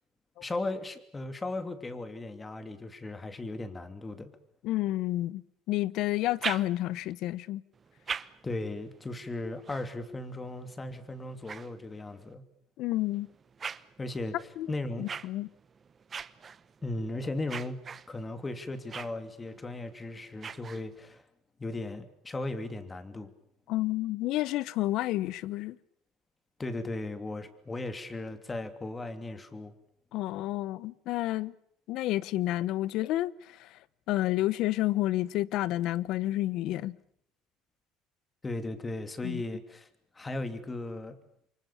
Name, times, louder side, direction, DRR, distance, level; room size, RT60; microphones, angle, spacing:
voice 1, 0.4-4.3 8.4-12.5 14.0-15.1 16.8-21.2 21.6-23.3 26.6-29.7 38.4-39.9 40.1-41.2, left 2 dB, 15° left, 2.9 m, -37 dB
voice 2, 4.6-7.6 12.8-13.3 14.6-14.7 15.0-15.5 23.7-25.8 30.1-31.5 31.9-33.7 34.1-37.0 39.2-39.4, left 15 dB, 65° left, 1.0 m, -30 dB
sound 1, 6.1-7.1 7.7-12.3 12.9-21.2, right 6 dB, 30° right, 1.0 m, -44 dB
28.0 x 24.5 x 7.1 m
supercardioid pair, 110°, 0 cm